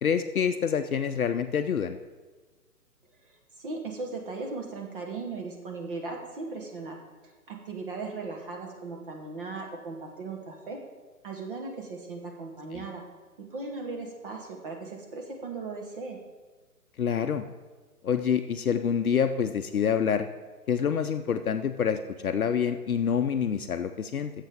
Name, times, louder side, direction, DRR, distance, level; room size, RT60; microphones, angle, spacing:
voice 1, 0.0-2.0 12.7-12.8 17.0-17.4 18.0-20.3 20.7-24.3, left 7 dB, 65° left, 8 dB, 0.7 m, -27 dB
voice 2, 3.6-7.0 7.2-10.8 11.2-13.0 13.4-16.2, right 3 dB, 35° right, 1 dB, 1.2 m, -37 dB
15.5 x 7.4 x 3.6 m, 1.3 s
figure-of-eight pair, 135°, 47 cm